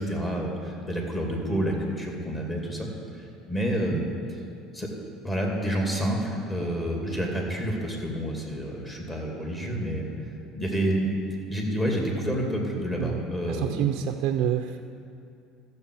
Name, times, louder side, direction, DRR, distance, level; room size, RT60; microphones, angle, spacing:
voice 1, 0.0-2.9 3.5-4.1 4.7-4.9 5.2-10.1 10.5-11.1 11.5-13.8, right 1 dB, 20° left, -1 dB, 2.5 m, -28 dB
voice 2, 13.0-14.8, right 10 dB, 65° right, 6 dB, 0.4 m, -28 dB
14.5 x 6.9 x 4.7 m, 2.5 s
supercardioid pair, 90°, 0 cm